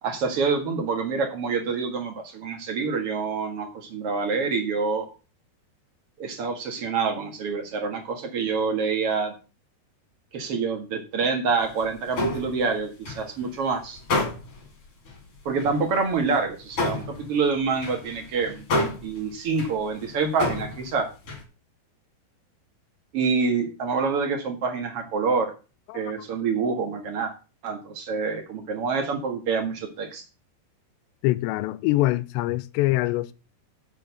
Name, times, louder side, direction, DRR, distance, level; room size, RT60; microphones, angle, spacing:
voice 1, 0.0-5.1 6.2-9.3 10.3-14.0 15.5-21.1 23.1-25.5 25.9-27.3 27.6-30.2, right 5 dB, 50° right, 1.9 m, -27 dB
sound 1, 11.6-13.5 13.9-14.7 15.0-15.2 15.6-21.4, left 2 dB, 40° left, 3.2 m, -30 dB
voice 2, 31.2-33.3, left 18 dB, 90° left, 2.8 m, -24 dB
7.1 x 7.0 x 6.9 m
omnidirectional pair, 4.9 m